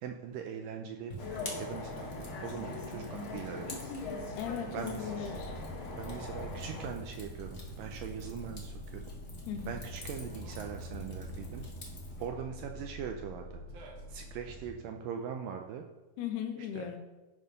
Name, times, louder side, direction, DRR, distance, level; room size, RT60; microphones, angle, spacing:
voice 1, 0.0-1.2 1.6-3.8 4.7-5.1 6.0-9.0 9.7-11.6 12.2-13.5 14.1-15.8 16.8-16.9, right 7 dB, 80° right, 4 dB, 2.0 m, -41 dB
Fire, 1.1-12.3, equal, 65° left, 0.7 m, -46 dB
sound 1, 1.2-6.9, left 3 dB, 45° left, 1.9 m, -41 dB
voice 2, 4.4-5.5 9.5-9.8 16.2-17.0, left 8 dB, 85° left, 5 dB, 3.1 m, -37 dB
sound 2, 5.3-14.7, equal, 60° right, 2.4 m, -46 dB
12.5 x 5.5 x 5.3 m, 1.2 s
omnidirectional pair, 4.5 m